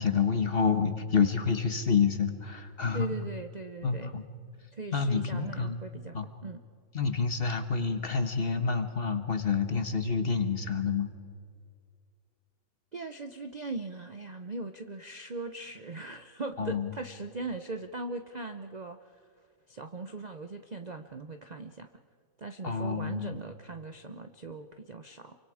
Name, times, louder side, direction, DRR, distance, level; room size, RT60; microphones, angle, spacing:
voice 1, 0.0-3.1 3.8-4.2 4.9-5.8 6.1-6.3 6.9-11.1 16.6-16.9 22.6-23.3, left 5 dB, 35° left, 8 dB, 1.3 m, -28 dB
voice 2, 2.9-4.1 4.7-6.6 12.9-19.1 19.7-21.9 22.4-25.3, right 3 dB, 60° right, 8 dB, 0.4 m, -40 dB
28.0 x 24.0 x 4.9 m, 2.2 s
omnidirectional pair, 1.9 m